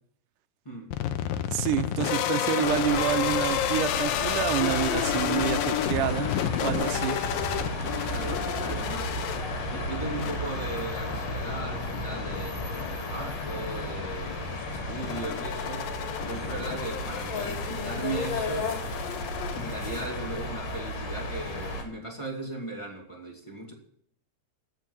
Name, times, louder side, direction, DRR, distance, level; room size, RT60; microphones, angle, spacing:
sound 1, 0.9-20.1, left 11 dB, 85° left, 2.5 m, -32 dB
voice 1, 1.5-6.3 6.6-7.2 8.0-8.1, right 13 dB, 75° right, 11 dB, 2.1 m, -28 dB
sound 2, 2.6-21.8, left 2 dB, 55° left, 3.0 m, -34 dB
sound 3, 7.2-15.5, right 4 dB, 25° left, 1.3 m, -40 dB
voice 2, 8.1-9.1 9.7-15.9 16.3-18.7 19.5-23.7, right 2 dB, 10° left, 0 dB, 1.9 m, -37 dB
14.5 x 5.9 x 9.4 m, 0.66 s
omnidirectional pair, 3.9 m